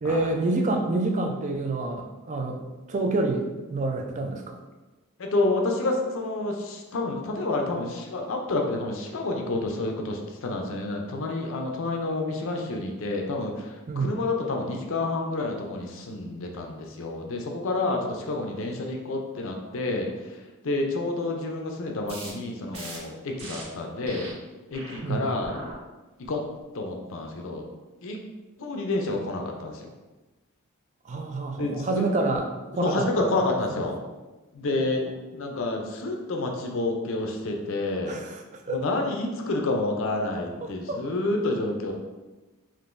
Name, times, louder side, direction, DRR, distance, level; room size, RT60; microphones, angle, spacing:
voice 1, 0.0-2.6 2.9-4.6 13.9-14.1 25.0-25.3 31.1-32.4 32.7-33.3 33.7-33.8 38.1-38.8 40.6-41.0, right 2 dB, 35° right, 3 dB, 0.3 m, -28 dB
voice 2, 5.2-24.3 24.7-25.6 26.2-26.4 26.7-27.6 28.0-28.2 28.6-29.9 31.6-32.1 32.8-34.0 34.5-35.1 35.3-38.2 38.7-41.9, left 2 dB, 60° left, 2 dB, 0.5 m, -29 dB
sound 1, 22.1-22.3 22.7-23.0 23.4-23.6 24.0-24.3 24.7-25.0 25.4-25.7 26.2-26.6, right 2 dB, 65° right, 1.3 m, -40 dB
3.7 x 2.6 x 2.5 m, 1.2 s
head